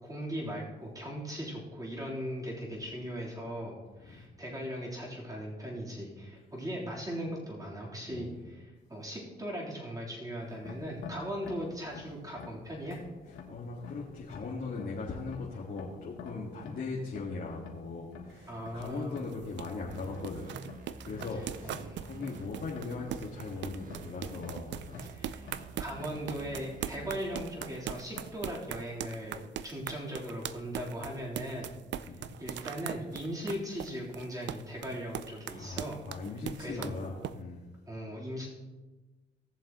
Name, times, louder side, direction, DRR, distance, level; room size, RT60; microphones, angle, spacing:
voice 1, 0.0-13.0 18.5-19.3 21.6-22.1 25.1-25.5 25.8-31.8 32.4-36.0 36.6-37.0 37.9-38.5, equal, 15° right, -5 dB, 3.7 m, -39 dB
Sink drain - Genzano, 10.4-28.7, left 4 dB, 75° left, 1.7 m, -51 dB
voice 2, 13.5-20.5 21.0-25.1 32.0-32.3 35.5-37.6, left 4 dB, 50° left, -4 dB, 1.9 m, -39 dB
sound 1, 18.3-37.3, right 10 dB, 65° right, 0.5 m, -41 dB
sound 2, 19.9-27.4, right 3 dB, 45° right, 1.5 m, -49 dB
18.0 x 7.1 x 3.1 m, 1.2 s
cardioid pair, 90°, 20 cm